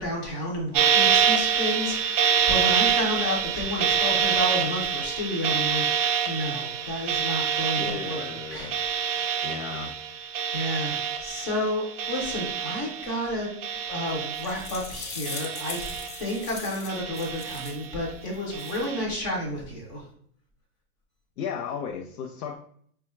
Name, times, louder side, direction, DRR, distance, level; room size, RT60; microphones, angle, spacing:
voice 1, 0.0-5.8 6.3-9.6 10.5-13.5 13.9-20.0, left 1 dB, 15° left, -2 dB, 0.4 m, -31 dB
sound 1, 0.7-13.3 13.6-14.8 15.2-16.5 16.9-17.9 18.5-19.0, right 7 dB, 60° right, 0.6 m, -26 dB
voice 2, 7.8-8.8 9.4-10.0 21.4-22.6, left 6 dB, 80° left, 4 dB, 0.5 m, -35 dB
sound 2, 14.1-17.9 18.3-18.9, left 4 dB, 50° left, 0.8 m, -40 dB
3.9 x 2.3 x 3.0 m, 0.62 s
supercardioid pair, 155°, 44 cm